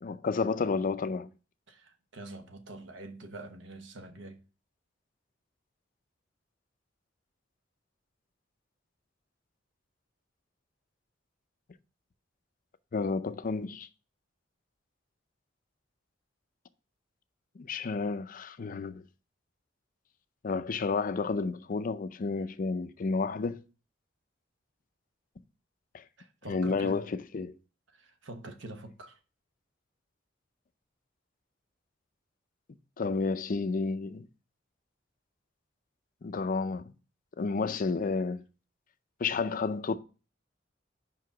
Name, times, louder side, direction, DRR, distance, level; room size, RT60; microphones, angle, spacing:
voice 1, 0.0-1.3 12.9-13.9 17.6-19.0 20.4-23.6 25.9-26.0 26.5-27.5 33.0-34.3 36.2-36.8 37.4-38.4 39.2-39.9, left 4 dB, 45° left, 0.5 m, -31 dB
voice 2, 1.7-4.4 26.2-27.0 27.9-29.2, right 2 dB, 75° right, 1.0 m, -45 dB
5.5 x 4.8 x 5.9 m
head